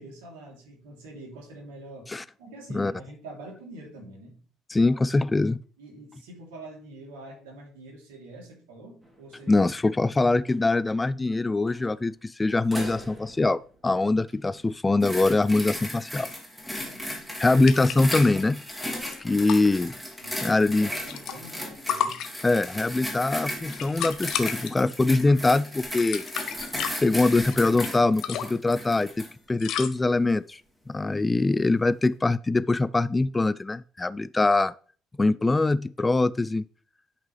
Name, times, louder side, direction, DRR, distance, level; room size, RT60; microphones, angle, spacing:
voice 1, 0.0-2.1 2.4-4.4 4.8-5.0 5.8-9.7 16.9-17.4 20.2-20.6 20.8-22.2, right 2 dB, 70° right, 3.0 m, -45 dB
voice 2, 4.7-5.6 9.5-16.3 17.4-18.6 19.2-19.9 20.4-20.9 22.4-26.2 27.0-30.6 30.9-34.7 35.2-36.7, left 2 dB, 15° left, 0.3 m, -23 dB
sound 1, 9.0-9.5 9.9-10.0 10.3-10.6 11.7-12.1 12.5-14.7, right 1 dB, 15° right, 2.8 m, -43 dB
sound 2, 15.0-29.3 30.0-30.1, left 1 dB, ahead, 2.6 m, -36 dB
sound 3, 17.7-18.4 18.7-18.8 19.0-19.6 20.6-21.6 21.9-22.7 23.2-24.7 25.1-25.4 25.8-27.9 28.2-28.7 29.6-29.9, left 9 dB, 55° left, 0.8 m, -32 dB
11.0 x 5.8 x 3.2 m
figure-of-eight pair, 55°, 0 cm